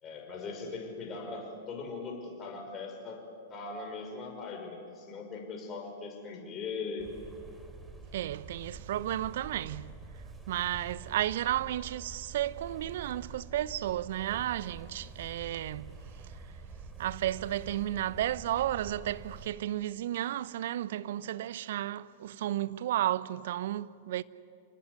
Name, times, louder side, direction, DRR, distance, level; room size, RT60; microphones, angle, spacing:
voice 1, 0.0-3.2 3.5-7.1, left 4 dB, 30° left, 5.7 m, -40 dB
sound 1, 7.0-19.5, right 4 dB, 10° right, 3.4 m, -47 dB
voice 2, 8.1-9.9 10.5-16.0 17.0-24.2, right 13 dB, 60° right, 0.8 m, -33 dB
27.0 x 19.5 x 9.7 m
figure-of-eight pair, 100°, 0 cm